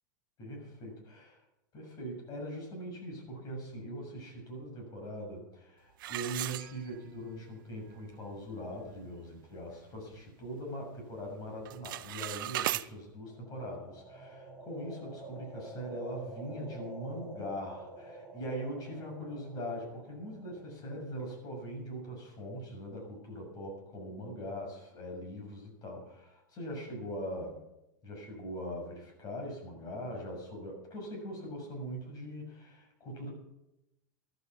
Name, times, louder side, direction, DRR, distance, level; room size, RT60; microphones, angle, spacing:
voice 1, 0.4-1.4 1.7-27.6 28.0-33.3, equal, 35° left, 1 dB, 6.8 m, -41 dB
sound 1, 6.0-7.3 7.7-7.8 8.4-8.5 8.9-9.2 9.6-10.7 11.0-11.3 11.6-12.9, right 15 dB, 75° right, 0.5 m, -37 dB
sound 2, 13.3-21.3, right 2 dB, 10° right, 2.3 m, -48 dB
14.0 x 11.5 x 5.9 m, 0.89 s
supercardioid pair, 135°, 11 cm